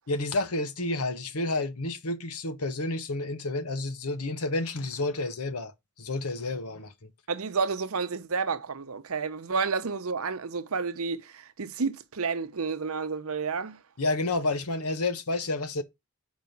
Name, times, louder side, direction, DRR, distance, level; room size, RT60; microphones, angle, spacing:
voice 1, 0.1-7.1 14.0-15.8, left 2 dB, 85° left, 1.1 m, -30 dB
voice 2, 7.3-13.8, right 5 dB, 75° right, 0.8 m, -30 dB
5.2 x 4.8 x 5.8 m
head